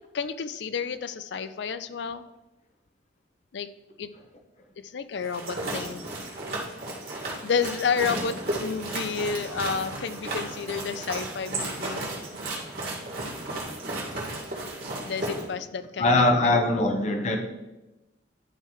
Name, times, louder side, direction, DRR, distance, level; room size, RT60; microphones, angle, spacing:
voice 1, 0.1-2.2 3.5-3.7 4.0-4.1 4.8-6.1 7.4-12.0 15.0-16.6 16.8-16.9, left 5 dB, 65° left, 0.4 m, -30 dB
sound 1, 5.2-15.4, right 2 dB, 50° right, 2.0 m, -34 dB
voice 2, 16.0-17.4, left 2 dB, 35° left, 0.8 m, -21 dB
11.0 x 3.9 x 4.5 m
head